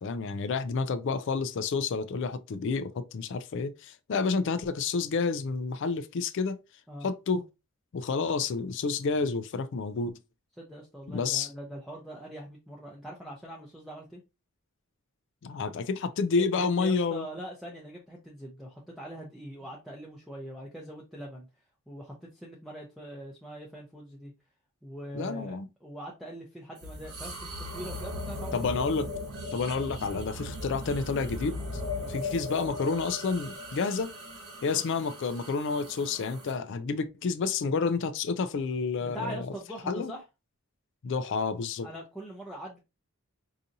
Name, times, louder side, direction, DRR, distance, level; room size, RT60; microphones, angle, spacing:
voice 1, 0.0-6.6 7.0-7.5 7.9-10.2 11.1-11.5 15.4-17.3 25.1-25.7 28.5-29.1 29.5-31.8 32.1-34.1 34.6-39.5 39.9-40.1 41.0-41.9, left 4 dB, 55° left, 0.4 m, -29 dB
voice 2, 10.6-14.2 15.6-15.7 16.3-21.5 21.9-24.3 24.8-28.8 31.9-32.1 39.0-40.2 41.8-42.8, equal, ahead, 0.6 m, -42 dB
sound 1, 26.8-36.6, left 2 dB, 75° right, 1.4 m, -38 dB
4.8 x 2.7 x 2.6 m
head